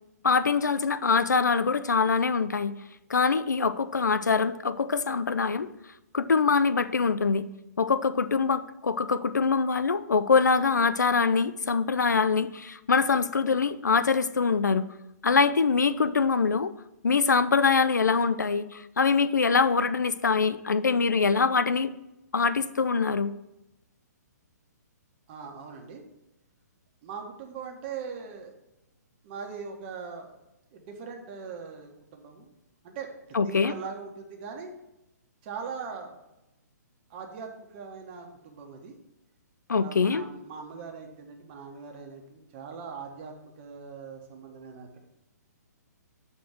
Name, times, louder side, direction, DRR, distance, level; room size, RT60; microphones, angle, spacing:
voice 1, 0.2-2.7 3.1-5.7 6.1-7.4 7.8-14.9 15.2-16.7 17.0-21.9 22.3-23.3 33.3-33.7 39.7-40.3, left 5 dB, 90° left, 14 dB, 0.4 m, -24 dB
voice 2, 25.3-26.0 27.0-28.5 29.2-30.3 30.7-32.5 32.8-33.1 33.4-34.7 35.4-36.1 37.1-38.9 39.7-45.0, right 5 dB, 35° right, 2 dB, 1.4 m, -40 dB
7.3 x 4.3 x 6.0 m, 0.92 s
hypercardioid pair, 135°, 9 cm